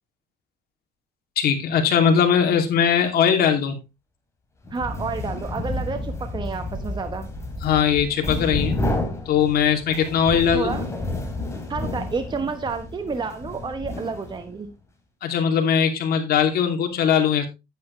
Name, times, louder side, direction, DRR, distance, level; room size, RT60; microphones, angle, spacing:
voice 1, 1.4-3.8 7.6-8.8 9.3-10.8 15.2-17.5, left 7 dB, 65° left, 4 dB, 2.7 m, -20 dB
sound 1, 4.6-14.6, left 2 dB, 15° left, 2.9 m, -30 dB
voice 2, 4.7-7.3 10.5-10.8 11.7-14.7, right 4 dB, 25° right, 7 dB, 1.2 m, -30 dB
9.5 x 9.4 x 3.2 m, 0.24 s
cardioid pair, 110°, 17 cm